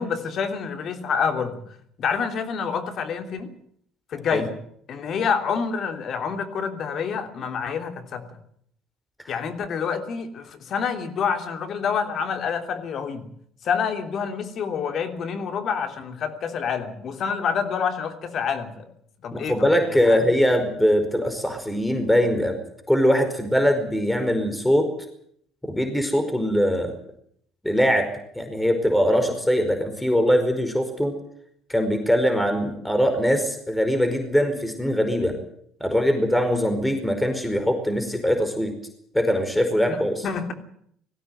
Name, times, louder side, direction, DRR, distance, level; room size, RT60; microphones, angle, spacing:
voice 1, 0.0-1.6 2.0-3.5 4.1-4.6 4.9-8.2 9.3-13.3 13.6-18.9 19.2-20.3 29.2-29.3 39.9-40.0 40.2-40.5, left 6 dB, 55° left, 7 dB, 3.1 m, -27 dB
voice 2, 19.3-22.6 22.9-24.9 25.6-26.9 27.6-28.1 28.3-31.1 31.7-35.3 35.8-38.7 39.1-40.2, equal, 5° left, 6 dB, 4.9 m, -22 dB
19.5 x 16.0 x 9.3 m, 0.68 s
hypercardioid pair, 65°, 0 cm